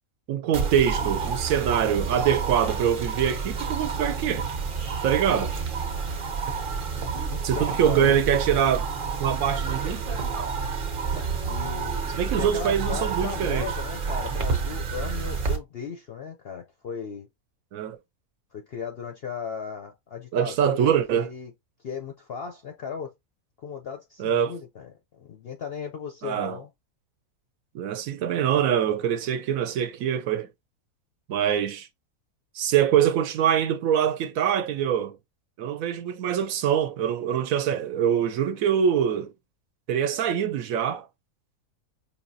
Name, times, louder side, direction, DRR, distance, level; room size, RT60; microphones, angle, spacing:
voice 1, 0.3-4.5 5.0-5.5 7.4-8.9 9.2-10.0 12.1-13.7 17.7-18.0 20.3-21.3 24.2-24.6 26.2-26.6 27.7-30.5 31.3-31.9 32.5-35.2 35.6-39.3 39.9-41.1, right 9 dB, 70° right, 0.9 m, -24 dB
sound 1, 0.5-15.6, right 5 dB, 45° right, 0.7 m, -29 dB
voice 2, 7.3-8.1 11.5-17.3 18.5-20.9 21.1-21.5 21.8-23.1 23.6-26.7, left 6 dB, 60° left, 0.6 m, -36 dB
5.0 x 2.8 x 2.6 m
omnidirectional pair, 1.6 m